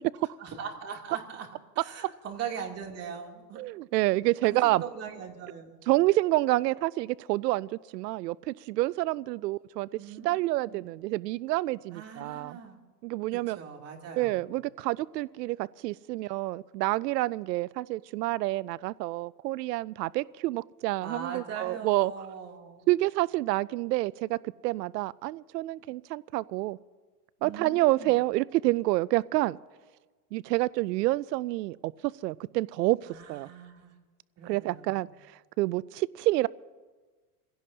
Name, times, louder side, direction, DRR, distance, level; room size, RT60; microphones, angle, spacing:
voice 1, 0.4-1.5 1.7-3.6 4.4-5.8 10.0-10.8 11.9-12.8 13.3-14.5 21.0-22.9 27.4-28.1 33.0-33.9 34.4-35.1, right 7 dB, 30° right, 1 dB, 3.0 m, -41 dB
voice 2, 3.6-4.8 5.9-9.9 10.2-12.6 13.0-13.6 14.2-22.1 22.9-26.8 27.4-29.6 30.3-31.9 32.2-33.5 34.4-35.1 35.6-36.5, right 18 dB, 85° right, 21 dB, 0.5 m, -28 dB
27.0 x 16.5 x 2.8 m, 1.3 s
supercardioid pair, 125°, 48 cm